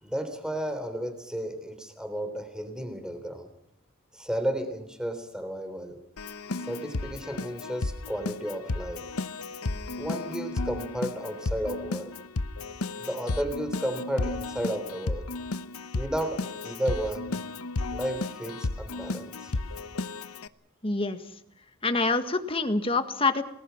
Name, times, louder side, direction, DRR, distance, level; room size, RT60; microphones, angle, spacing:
voice 1, 0.0-3.5 4.1-6.0 6.6-9.1 10.0-12.1 13.0-15.2 15.9-17.4 17.9-19.6, right 1 dB, 5° right, 8 dB, 3.5 m, -33 dB
Keyboard (musical), 6.2-20.5, left 3 dB, 85° left, 1.0 m, -33 dB
voice 2, 20.8-21.2 21.8-23.4, left 3 dB, 25° left, 8 dB, 1.7 m, -26 dB
29.5 x 20.0 x 5.8 m, 0.75 s
head